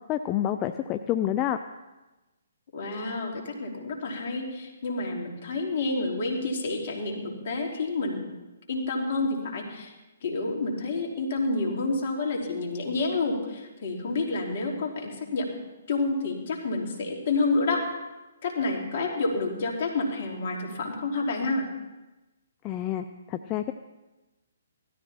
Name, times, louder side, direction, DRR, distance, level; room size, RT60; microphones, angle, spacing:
voice 1, 0.1-1.6 22.6-23.7, left 11 dB, 25° left, 8 dB, 0.5 m, -28 dB
voice 2, 2.7-8.2 8.7-9.9 10.2-15.5 15.9-17.8 18.4-21.6, left 3 dB, 50° left, 0 dB, 3.3 m, -29 dB
16.5 x 13.5 x 4.4 m, 1.1 s
hypercardioid pair, 140°, 0 cm